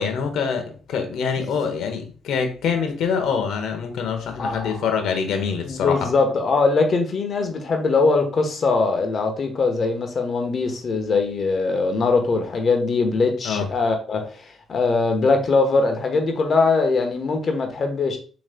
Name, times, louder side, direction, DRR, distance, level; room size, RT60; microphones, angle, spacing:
voice 1, 0.0-6.0 13.4-13.7, left 6 dB, 75° left, 0.9 m, -25 dB
voice 2, 4.4-4.8 5.6-18.2, left 3 dB, 50° left, 1.0 m, -21 dB
6.3 x 3.1 x 2.2 m
cardioid pair, 90°, 0 cm